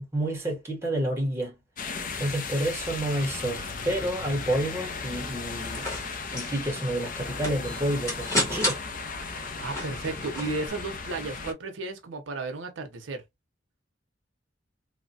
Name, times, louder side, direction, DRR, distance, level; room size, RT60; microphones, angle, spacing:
voice 1, 0.0-1.5 2.2-5.9 6.3-8.8, right 1 dB, 15° right, 0.8 m, -29 dB
sound 1, 1.8-11.5, left 4 dB, 45° left, 0.4 m, -36 dB
sound 2, 5.6-10.7, left 1 dB, 15° left, 1.1 m, -33 dB
voice 2, 9.2-13.2, right 3 dB, 80° right, 0.6 m, -34 dB
3.0 x 2.1 x 2.6 m
head